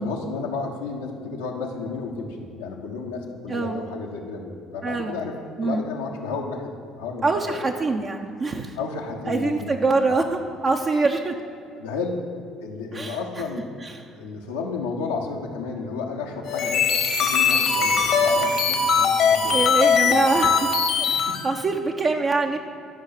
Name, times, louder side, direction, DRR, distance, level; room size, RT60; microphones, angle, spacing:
voice 1, 0.0-5.4 5.6-7.6 8.8-9.8 10.1-10.3 11.7-12.2 12.6-13.7 14.1-19.8 20.0-20.5 21.1-21.4, left 4 dB, 85° left, -1 dB, 1.2 m, -32 dB
voice 2, 3.5-3.8 4.8-5.2 5.6-5.8 7.2-8.8 9.3-11.3 12.9-13.2 13.8-14.1 19.5-22.6, right 3 dB, 40° right, 1 dB, 0.8 m, -24 dB
sound 1, 16.4-21.5, left 5 dB, 60° left, 1.3 m, -20 dB
11.0 x 5.6 x 8.4 m, 2.4 s
hypercardioid pair, 55°, 0 cm